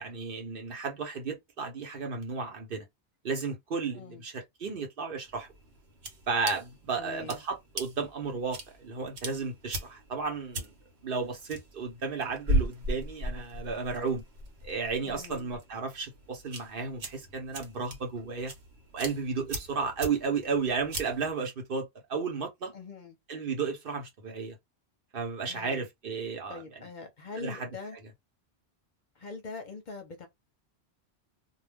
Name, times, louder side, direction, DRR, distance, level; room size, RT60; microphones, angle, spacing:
voice 1, 0.0-2.9 3.2-5.5 6.3-10.7 11.0-14.2 14.6-18.5 18.9-22.7 23.3-24.6 25.1-26.8 27.4-27.7, right 5 dB, 60° right, 0.9 m, -33 dB
sound 1, 5.3-21.3, right 1 dB, 80° right, 1.1 m, -38 dB
voice 2, 7.0-7.4 15.0-15.5 22.7-23.2 25.5-25.9 26.5-28.0 29.2-30.3, left 4 dB, 55° left, 0.7 m, -43 dB
2.2 x 2.2 x 3.3 m
omnidirectional pair, 1.1 m